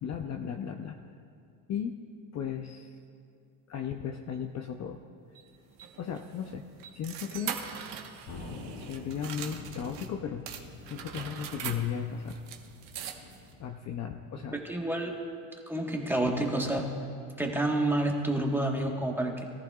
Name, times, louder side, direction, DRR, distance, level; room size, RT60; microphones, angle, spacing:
voice 1, 0.0-1.0 1.7-1.9 2.3-3.0 3.7-5.0 6.0-6.6 6.9-7.6 8.8-12.4 13.6-14.6, left 8 dB, 35° left, 4 dB, 0.6 m, -36 dB
sound 1, 5.3-10.1 10.5-13.5, right 8 dB, 60° right, 1.3 m, -42 dB
Thunder, 8.3-15.1, left 2 dB, 85° left, 3.7 m, -47 dB
voice 2, 14.5-15.2 15.7-16.9 17.4-19.5, right 1 dB, 5° right, 0 dB, 1.3 m, -29 dB
22.5 x 14.0 x 2.4 m, 2.5 s
cardioid pair, 140°, 48 cm